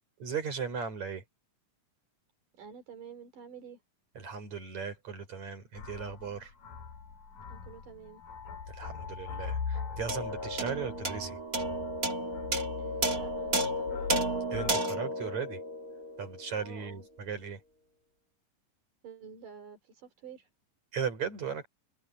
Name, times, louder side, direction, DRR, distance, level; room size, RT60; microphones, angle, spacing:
voice 1, 0.2-1.2 4.1-6.5 8.7-11.4 14.5-15.6 16.2-17.6 20.9-21.7, right 6 dB, 55° right, 6.7 m, -37 dB
voice 2, 2.6-3.8 7.5-8.2 12.8-14.1 16.5-17.1 19.0-20.5, right 7 dB, 70° right, 4.9 m, -48 dB
sound 1, 5.7-14.8, left 6 dB, 80° left, 5.1 m, -41 dB
sound 2, 10.1-16.7, right 1 dB, 30° right, 2.4 m, -33 dB
omnidirectional pair, 3.9 m